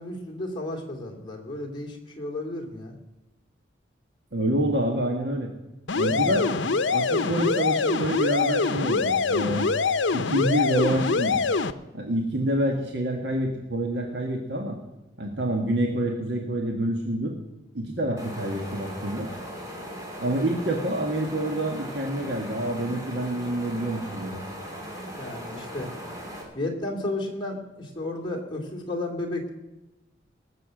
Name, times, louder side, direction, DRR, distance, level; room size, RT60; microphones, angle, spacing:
voice 1, 0.0-2.9 6.3-6.7 25.2-25.9 26.5-29.5, left 2 dB, 25° left, 0 dB, 2.6 m, -33 dB
voice 2, 4.3-5.5 5.9-6.5 6.9-9.7 10.1-11.4 11.9-14.8 15.2-17.4 17.7-19.3 20.2-24.4, right 1 dB, 65° right, 1 dB, 1.5 m, -27 dB
sound 1, 5.9-11.7, left 4 dB, 85° left, 0.7 m, -24 dB
sound 2, 18.2-26.4, equal, 20° right, 2.8 m, -38 dB
19.0 x 6.8 x 7.6 m, 1.0 s
head